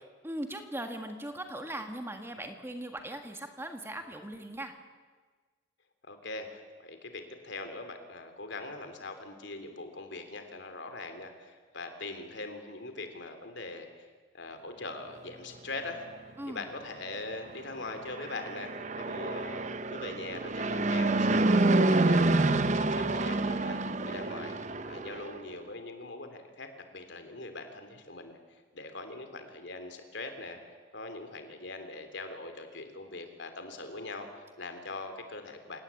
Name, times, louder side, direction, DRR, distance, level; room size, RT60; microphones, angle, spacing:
voice 1, 0.2-4.7 16.4-16.7, right 1 dB, 10° right, 5 dB, 1.6 m, -39 dB
voice 2, 6.0-14.1 14.3-16.0 16.5-23.8 24.0-24.6 24.8-28.4 28.7-30.6 30.9-35.8, left 2 dB, 65° left, 7 dB, 3.2 m, -42 dB
Fixed-wing aircraft airplane, 18.0-25.4, right 2 dB, 35° right, 0.8 m, -28 dB
28.0 x 18.5 x 8.5 m, 1.5 s
head